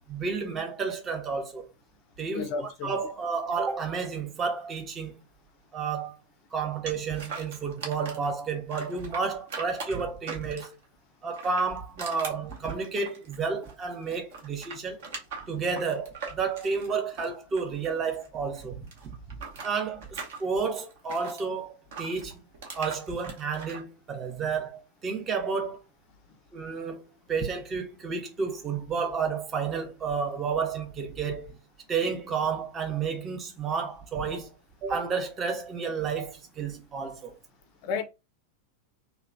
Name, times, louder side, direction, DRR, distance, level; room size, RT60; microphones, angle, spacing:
voice 1, 0.1-1.6 2.2-5.1 5.7-6.2 6.5-10.7 11.2-15.0 15.5-18.9 19.6-22.4 22.7-25.8 26.5-31.6 31.9-34.5 34.8-37.3, right 5 dB, 25° right, 0.7 m, -31 dB
voice 2, 2.3-2.9 37.8-38.0, left 5 dB, 45° left, 0.4 m, -31 dB
sound 1, 6.9-8.3 8.7-10.8 11.3-13.8 14.1-18.3 18.5-21.4 21.9-23.8, right 4 dB, 55° right, 0.8 m, -40 dB
3.0 x 2.2 x 2.5 m
figure-of-eight pair, 90°, 0 cm